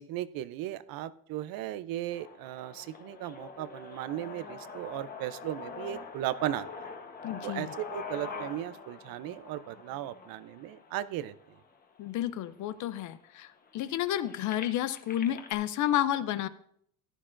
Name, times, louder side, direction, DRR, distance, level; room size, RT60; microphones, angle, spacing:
voice 1, 0.0-6.9 7.4-11.3, right 13 dB, 60° right, 16 dB, 0.6 m, -36 dB
sound 1, 2.1-12.1 12.7-12.8 13.1-15.5, left 5 dB, 20° left, 1.0 m, -45 dB
voice 2, 7.2-7.7 12.0-16.5, left 12 dB, 50° left, 15 dB, 0.5 m, -31 dB
15.0 x 11.0 x 2.5 m, 0.67 s
cardioid pair, 160°, 40 cm